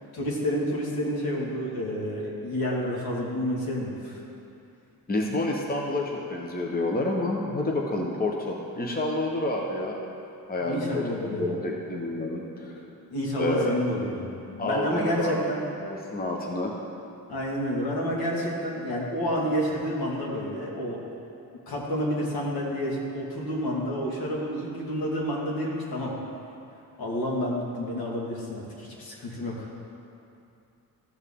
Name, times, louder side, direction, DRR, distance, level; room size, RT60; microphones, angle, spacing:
voice 1, 0.1-4.2 10.6-11.6 13.1-15.6 17.3-21.0 21.7-26.1 27.0-29.8, equal, 75° left, -3 dB, 2.1 m, -29 dB
voice 2, 5.1-10.0 10.5-12.7 13.4-13.8 14.6-15.4 15.8-16.7, left 2 dB, 25° left, -1 dB, 1.0 m, -29 dB
14.5 x 6.5 x 3.7 m, 2.6 s
cardioid pair, 85°, 36 cm